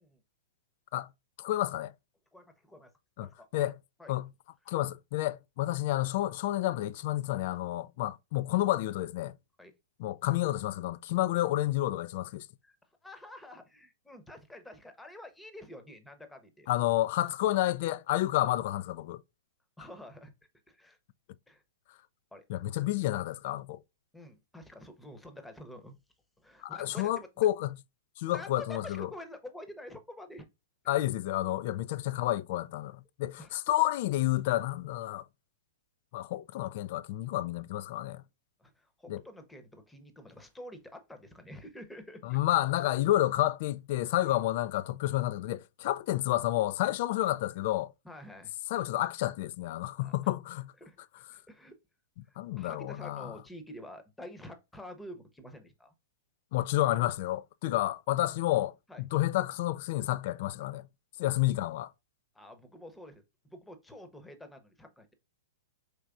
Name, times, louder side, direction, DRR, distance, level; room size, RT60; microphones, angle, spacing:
voice 1, 1.4-1.9 3.2-3.3 3.5-3.7 4.1-4.3 4.7-9.3 10.0-12.5 16.7-19.2 22.5-23.8 26.6-27.7 28.2-29.1 30.9-35.2 36.1-38.2 39.1-39.2 42.2-47.9 48.7-50.7 52.4-53.3 56.5-60.8 61.2-61.9, left 15 dB, 55° left, 0.3 m, -30 dB
voice 2, 2.3-2.9 3.2-3.7 4.0-4.1 9.6-9.7 12.6-12.8 13.0-16.7 19.8-20.3 20.7-21.0 21.5-21.6 22.3-22.4 24.1-26.0 26.4-27.5 28.3-30.5 33.4-33.5 38.6-42.4 44.2-44.3 48.0-48.5 50.0-50.1 50.8-51.0 51.3-51.8 52.3-55.9 58.9-59.0 62.3-65.1, left 1 dB, 5° left, 0.8 m, -48 dB
4.6 x 3.1 x 2.5 m
hypercardioid pair, 120°, 0 cm